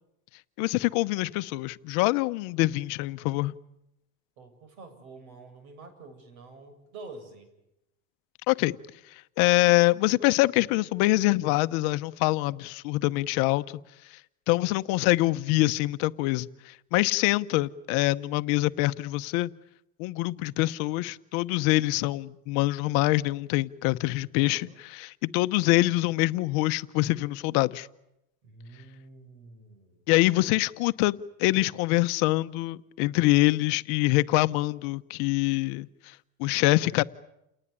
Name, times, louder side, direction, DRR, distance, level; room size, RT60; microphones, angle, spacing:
voice 1, 0.6-3.5 8.5-8.7 9.1-13.6 14.1-14.2 14.5-19.5 20.0-27.9 30.1-37.0, left 19 dB, 55° left, 0.9 m, -25 dB
voice 2, 4.4-7.5 24.4-24.8 28.4-30.0, right 3 dB, 90° right, 7.7 m, -47 dB
29.0 x 19.0 x 9.9 m
supercardioid pair, 150°, 41 cm